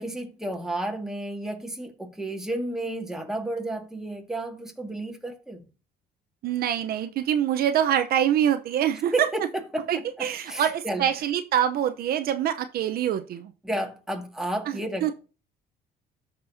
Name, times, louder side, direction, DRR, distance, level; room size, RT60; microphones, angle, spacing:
voice 1, 0.0-5.6 9.1-11.1 13.6-15.1, right 1 dB, 5° right, 1.9 m, -32 dB
voice 2, 6.4-9.1 9.9-13.5 14.7-15.1, right 10 dB, 65° right, 0.8 m, -25 dB
13.5 x 5.4 x 2.7 m
cardioid pair, 110°, 17 cm